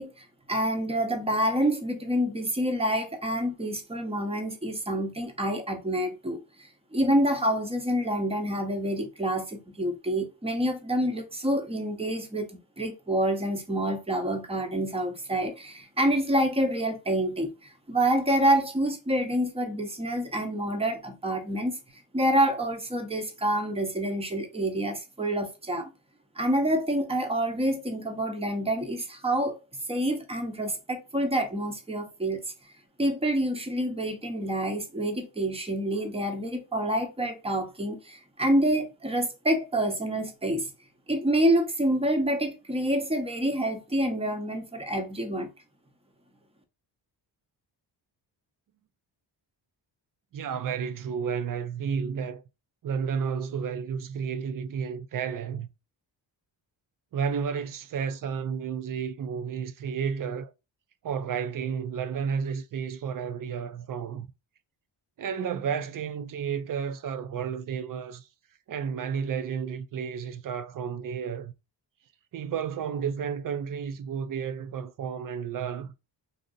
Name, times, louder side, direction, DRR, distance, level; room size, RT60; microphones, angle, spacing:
voice 1, 0.0-12.5 12.8-21.8 22.1-25.9 26.4-29.6 29.9-32.4 33.0-40.7 41.1-45.5, right 1 dB, 15° right, 0.7 m, -27 dB
voice 2, 50.3-52.4 52.8-55.7 57.1-60.5 61.0-64.3 65.2-68.3 68.7-71.5 72.3-75.9, right 7 dB, 50° right, 0.4 m, -32 dB
2.6 x 2.0 x 3.8 m
cardioid pair, 75°, 45 cm